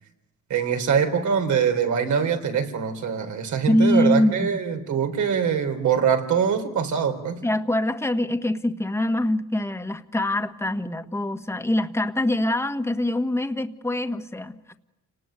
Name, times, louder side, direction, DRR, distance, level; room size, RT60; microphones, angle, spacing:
voice 1, 0.5-7.4, right 7 dB, 70° right, 6 dB, 3.9 m, -23 dB
voice 2, 3.7-4.5 7.4-14.8, left 1 dB, 10° left, 8 dB, 1.6 m, -24 dB
30.0 x 19.5 x 9.2 m, 0.95 s
cardioid pair, 90°, 30 cm